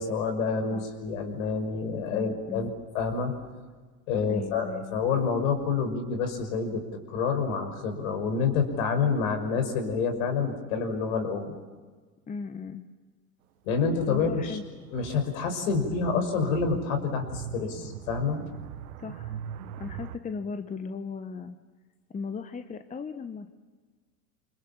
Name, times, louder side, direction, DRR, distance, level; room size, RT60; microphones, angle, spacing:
voice 1, 0.0-2.7 2.9-3.3 4.1-6.8 7.1-11.6 13.6-14.6 14.9-18.4, left 5 dB, 60° left, 7 dB, 5.9 m, -28 dB
voice 2, 2.1-2.8 4.3-5.0 12.3-12.8 14.1-14.6 19.0-19.4 19.8-21.6 22.1-23.5, left 5 dB, 15° left, 9 dB, 1.3 m, -37 dB
sound 1, 14.0-20.2, right 9 dB, 65° right, 1.8 m, -41 dB
28.5 x 25.0 x 7.4 m, 1.4 s
figure-of-eight pair, 85°, 47 cm